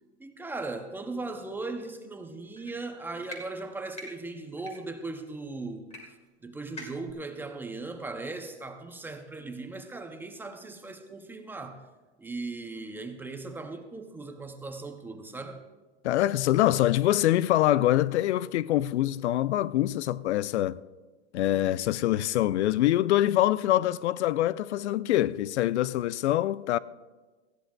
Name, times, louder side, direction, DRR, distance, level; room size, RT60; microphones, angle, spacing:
voice 1, 0.2-5.9 6.4-11.8 12.2-15.6, right 3 dB, 5° right, 0.4 m, -38 dB
sound 1, 2.6-2.7 3.2-3.4 3.9-4.1 4.6-4.7 5.9-6.0 6.3-6.4 6.8-7.1, left 2 dB, 20° left, 2.1 m, -42 dB
voice 2, 16.0-20.8 21.3-26.8, left 14 dB, 75° left, 0.5 m, -24 dB
19.0 x 14.0 x 2.2 m
hypercardioid pair, 135°, 34 cm